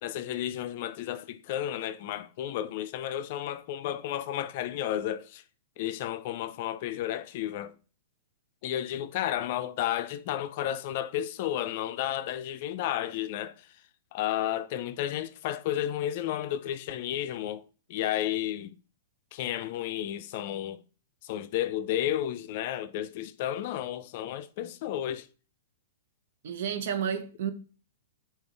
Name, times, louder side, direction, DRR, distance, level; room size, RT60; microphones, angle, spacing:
voice 1, 0.0-5.4 5.8-7.7 8.6-13.5 14.1-17.6 17.9-18.7 19.3-20.8 21.2-25.3, left 12 dB, 50° left, 0.3 m, -32 dB
voice 2, 26.4-27.5, right 8 dB, 65° right, 0.7 m, -31 dB
3.6 x 2.8 x 3.3 m
hypercardioid pair, 120°, 0 cm